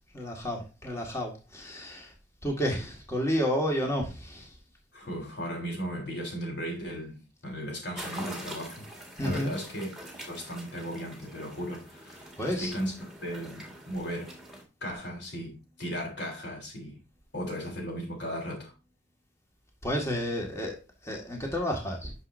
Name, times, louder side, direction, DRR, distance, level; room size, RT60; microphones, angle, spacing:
voice 1, 0.1-2.1 2.4-4.5 9.2-9.5 12.4-12.7 19.8-20.8 21.0-22.1, equal, 15° left, 1.9 m, -31 dB
voice 2, 4.9-8.9 9.2-9.9 10.3-12.9 13.2-14.4 14.8-17.0 17.3-18.7, equal, 60° left, 3.7 m, -36 dB
sound 1, 8.0-14.6, right 1 dB, ahead, 1.9 m, -44 dB
9.7 x 6.4 x 2.7 m
head